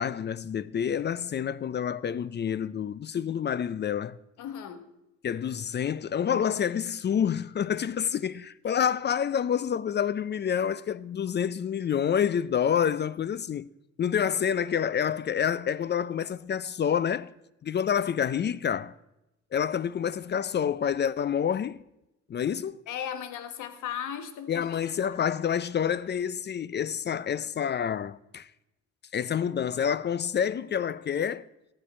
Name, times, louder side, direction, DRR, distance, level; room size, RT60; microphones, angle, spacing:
voice 1, 0.0-4.2 5.2-13.7 14.0-17.3 17.6-18.9 19.5-21.8 22.3-22.8 24.5-28.5 29.1-31.5, left 8 dB, 35° left, 0.4 m, -28 dB
voice 2, 4.4-4.8 22.9-24.8 25.0-25.2, left 9 dB, 80° left, 1.2 m, -37 dB
13.5 x 11.0 x 4.3 m
cardioid pair, 90°, 30 cm